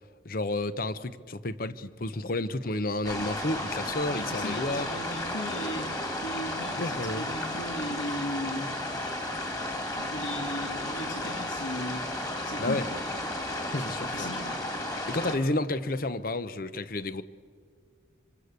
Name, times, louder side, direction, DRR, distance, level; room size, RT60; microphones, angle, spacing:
voice 1, 0.2-4.9 6.8-7.3 12.6-12.8 13.7-14.3 15.1-17.2, left 2 dB, 50° left, 0.8 m, -31 dB
sound 1, 3.0-15.4, left 1 dB, 20° left, 3.0 m, -33 dB
voice 2, 4.1-8.7 10.0-12.0 12.4-12.9 14.0-14.5, left 1 dB, 80° left, 3.0 m, -37 dB
26.0 x 25.0 x 8.2 m
head